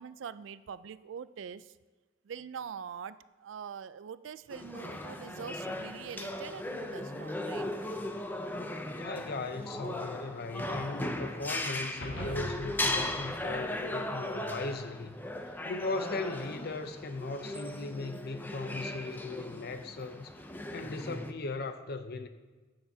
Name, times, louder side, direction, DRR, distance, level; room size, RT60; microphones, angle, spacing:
voice 1, 0.0-1.7 2.3-7.7, right 7 dB, 70° right, 0.4 m, -43 dB
sound 1, 4.5-21.3, left 1 dB, 10° left, 0.5 m, -37 dB
voice 2, 9.0-15.2 15.5-20.3 20.7-22.3, left 3 dB, 55° left, 0.6 m, -38 dB
sound 2, 12.0-14.5, equal, 80° left, 1.7 m, -43 dB
15.0 x 6.9 x 2.8 m
head